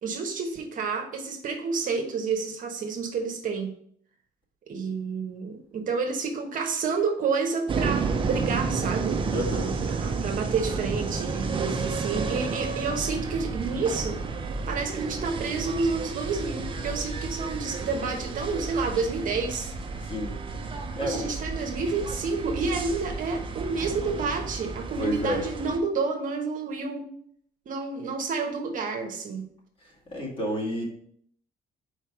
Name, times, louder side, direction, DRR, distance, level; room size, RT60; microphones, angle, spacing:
voice 1, 0.0-3.7 4.7-9.2 9.9-14.2 14.7-19.7 21.0-27.0 27.7-29.5, right 4 dB, 50° right, 3 dB, 1.1 m, -29 dB
sound 1, 7.7-25.8, right 4 dB, 30° right, 0.7 m, -31 dB
voice 2, 9.3-10.1 20.0-20.4 20.7-21.3 25.0-25.4 29.8-30.8, equal, 30° left, -2 dB, 2.1 m, -31 dB
4.6 x 4.5 x 4.6 m, 0.64 s
cardioid pair, 110°, 17 cm